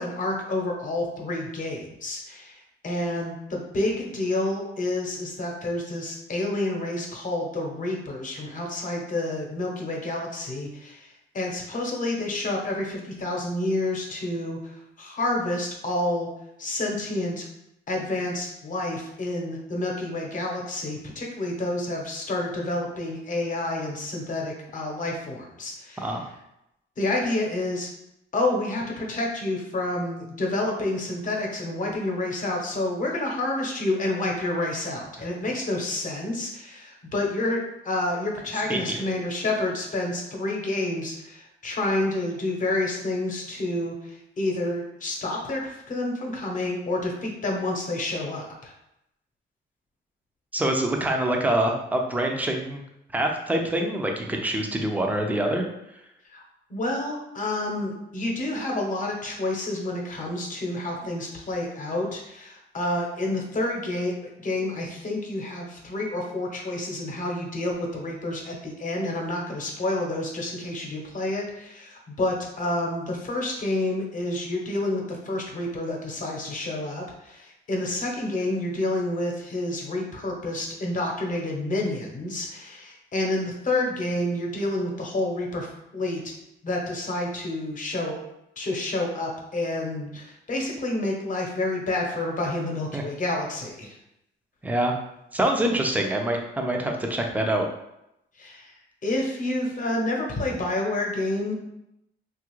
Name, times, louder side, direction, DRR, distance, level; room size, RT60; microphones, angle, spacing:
voice 1, 0.0-16.3 16.6-17.5 17.9-26.3 27.0-27.9 28.3-48.7 56.3-56.4 56.7-86.2 86.6-88.2 88.6-94.0 98.4-98.7 99.0-101.5, left 2 dB, 40° left, 0 dB, 0.9 m, -29 dB
voice 2, 50.5-52.8 53.1-55.6 92.9-93.0 94.6-94.9 95.3-97.7, right 1 dB, 10° right, 2 dB, 0.5 m, -25 dB
2.9 x 2.4 x 3.0 m, 0.83 s
cardioid pair, 90°, 20 cm